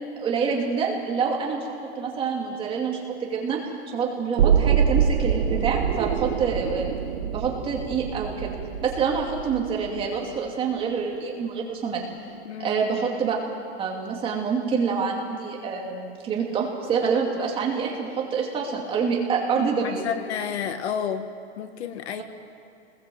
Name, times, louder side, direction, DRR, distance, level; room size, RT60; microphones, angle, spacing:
voice 1, 0.2-1.7 2.0-3.6 3.9-6.9 7.3-12.1 12.6-13.4 13.8-20.1, right 5 dB, 15° right, -1 dB, 2.6 m, -26 dB
sound 1, 4.4-10.3 10.7-10.8, right 7 dB, 70° right, 1.9 m, -25 dB
voice 2, 12.4-12.8 19.8-21.3 21.6-22.2, left 8 dB, 70° left, 9 dB, 1.7 m, -30 dB
26.0 x 20.5 x 7.8 m, 2.3 s
supercardioid pair, 175°, 34 cm